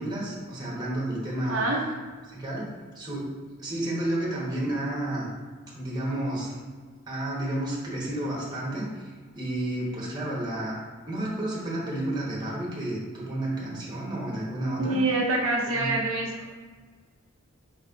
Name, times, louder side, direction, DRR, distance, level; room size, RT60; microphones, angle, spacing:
voice 1, 0.0-1.6 2.3-2.7 2.9-3.3 3.6-5.3 5.7-6.5 7.1-10.8 11.1-15.0 15.7-15.9, right 1 dB, 20° right, -5 dB, 1.2 m, -31 dB
voice 2, 1.5-1.8 14.8-16.5, right 2 dB, 80° right, -1 dB, 0.6 m, -26 dB
4.8 x 4.2 x 2.5 m, 1.5 s
head